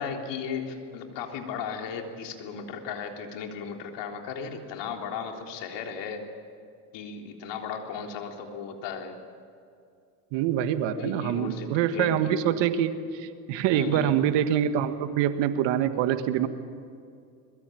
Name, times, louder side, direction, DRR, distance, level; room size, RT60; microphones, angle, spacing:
voice 1, 0.0-6.3 6.9-9.1 10.9-12.3 13.7-14.2, left 6 dB, 65° left, 3 dB, 3.7 m, -36 dB
voice 2, 10.3-16.5, right 10 dB, 65° right, 10 dB, 1.7 m, -25 dB
23.0 x 21.5 x 9.2 m, 2.4 s
hypercardioid pair, 75°, 46 cm